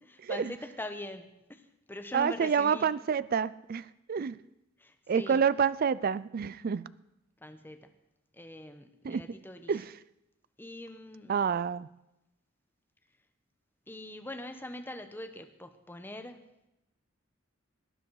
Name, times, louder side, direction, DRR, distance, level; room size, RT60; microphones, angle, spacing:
voice 1, 0.0-2.9 4.8-5.4 7.4-7.9 8.3-9.8 10.6-11.4 13.9-16.4, left 1 dB, 10° left, 7 dB, 1.0 m, -43 dB
voice 2, 2.1-4.4 5.1-6.9 9.0-9.2 9.7-9.8 11.3-11.9, right 6 dB, 45° right, 18 dB, 0.4 m, -28 dB
18.5 x 10.0 x 4.8 m, 0.90 s
head